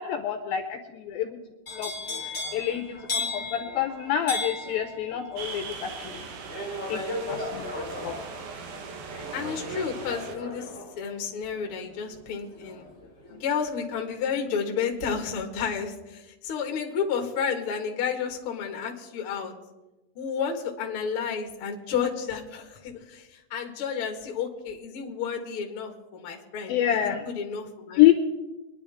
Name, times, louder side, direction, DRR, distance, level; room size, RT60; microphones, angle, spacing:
voice 1, 0.0-1.4 1.7-1.9 2.5-6.3 6.9-7.8 8.0-8.3 26.7-27.2 28.0-28.1, left 12 dB, 75° left, 6 dB, 2.3 m, -26 dB
sound 1, 1.7-13.6 14.0-14.4, left 2 dB, 20° left, 2.1 m, -36 dB
sound 2, 5.4-10.4, right 5 dB, 70° right, 3.0 m, -39 dB
voice 2, 9.3-12.8 13.3-19.5 20.1-28.1, left 6 dB, 50° left, 3 dB, 1.7 m, -31 dB
24.5 x 10.5 x 3.5 m, 1.1 s
omnidirectional pair, 4.7 m